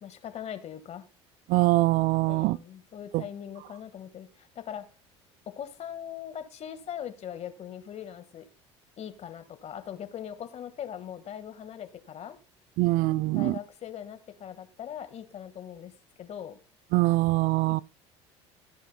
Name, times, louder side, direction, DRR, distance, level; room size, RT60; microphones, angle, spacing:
voice 1, 0.0-1.0 2.3-4.9 5.6-8.5 9.0-12.4 13.3-15.9 16.2-16.6, left 9 dB, 45° left, 1.7 m, -40 dB
voice 2, 1.5-2.6 3.1-3.2 12.8-13.6 16.9-17.8, right 20 dB, 60° right, 0.4 m, -23 dB
15.5 x 10.5 x 2.2 m
hypercardioid pair, 70°, 15 cm